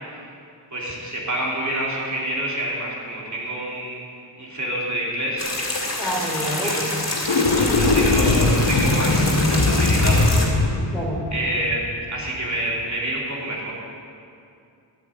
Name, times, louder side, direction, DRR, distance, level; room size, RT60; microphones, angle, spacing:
voice 1, 0.7-4.0 4.4-5.5 6.6-6.9 7.7-10.3 11.3-13.7, right 1 dB, 40° right, -4 dB, 3.1 m, -27 dB
sound 1, 5.4-10.5, left 2 dB, 40° left, 2.6 m, -27 dB
voice 2, 6.0-6.9 7.4-7.7 10.9-11.2, equal, ahead, -3 dB, 3.2 m, -28 dB
sound 2, 7.1-12.4, left 2 dB, 90° left, 1.2 m, -20 dB
12.0 x 8.7 x 8.1 m, 2.5 s
wide cardioid pair, 85°, 44 cm